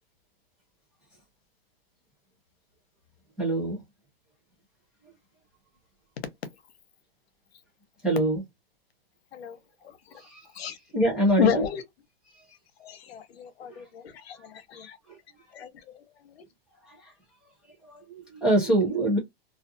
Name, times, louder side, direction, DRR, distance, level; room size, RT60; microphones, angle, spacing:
voice 1, 3.4-3.8 8.0-8.4 10.1-10.7 10.9-11.6 12.3-12.4 13.7-13.8 15.1-15.2 16.8-17.1 17.8-19.2, right 1 dB, 5° right, 0.4 m, -25 dB
voice 2, 11.4-11.8 12.8-15.0 15.5-16.4, left 9 dB, 80° left, 0.8 m, -31 dB
2.4 x 2.4 x 2.6 m
supercardioid pair, 165°, 31 cm